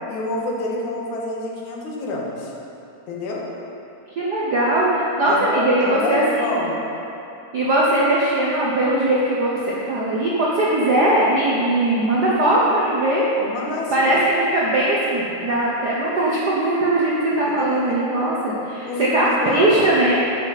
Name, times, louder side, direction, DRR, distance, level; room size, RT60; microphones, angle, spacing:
voice 1, 0.1-2.5 3.1-3.4 5.3-6.8 13.4-14.2 17.6-18.0 18.9-19.7, left 2 dB, 85° left, -2 dB, 2.7 m, -28 dB
voice 2, 4.2-6.7 7.5-13.3 13.9-20.2, right 1 dB, 70° right, -6 dB, 0.9 m, -20 dB
12.5 x 7.8 x 4.1 m, 2.9 s
omnidirectional pair, 3.4 m